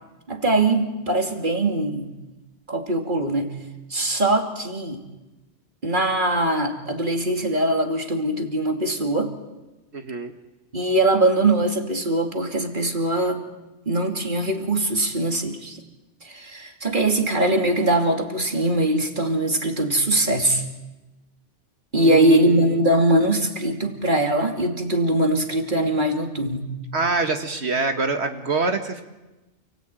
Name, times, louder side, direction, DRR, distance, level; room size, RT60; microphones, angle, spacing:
voice 1, 0.3-2.1 2.7-3.5 3.9-5.0 5.8-9.3 10.7-13.4 13.9-15.8 16.2-20.6 21.9-26.6, right 1 dB, 45° right, 3 dB, 2.8 m, -22 dB
voice 2, 9.9-10.3 22.0-22.8 26.9-29.0, right 3 dB, 70° right, 5 dB, 1.9 m, -25 dB
29.5 x 18.0 x 9.1 m, 1.1 s
omnidirectional pair, 1.2 m